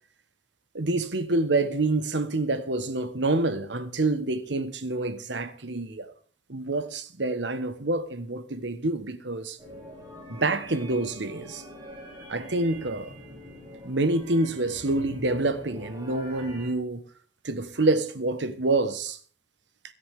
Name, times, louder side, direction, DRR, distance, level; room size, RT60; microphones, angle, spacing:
voice 1, 0.7-6.1 6.5-9.6 10.3-11.6 12.3-13.2 13.8-17.0 17.4-19.2, right 2 dB, 75° right, 1.3 m, -27 dB
sound 1, 9.6-16.7, equal, 20° right, 7.6 m, -44 dB
17.5 x 12.5 x 3.6 m
head